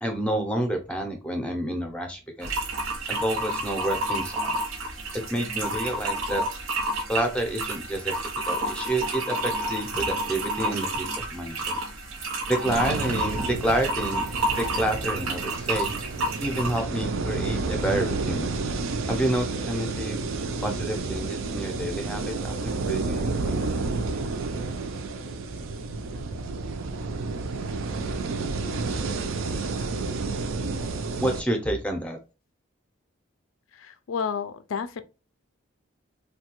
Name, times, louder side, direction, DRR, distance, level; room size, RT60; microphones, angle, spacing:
voice 1, 0.0-2.6 3.1-4.6 5.3-6.4 7.1-11.8 12.5-14.2 14.5-15.9 16.4-18.6 19.1-20.2 20.6-23.6 31.2-32.2, right 1 dB, 5° left, 0.5 m, -29 dB
sound 1, 2.4-16.8, right 2 dB, 90° right, 0.8 m, -30 dB
sound 2, 12.6-31.4, right 3 dB, 75° right, 0.4 m, -30 dB
voice 2, 33.7-35.0, left 6 dB, 75° left, 0.4 m, -31 dB
3.2 x 2.2 x 2.9 m
head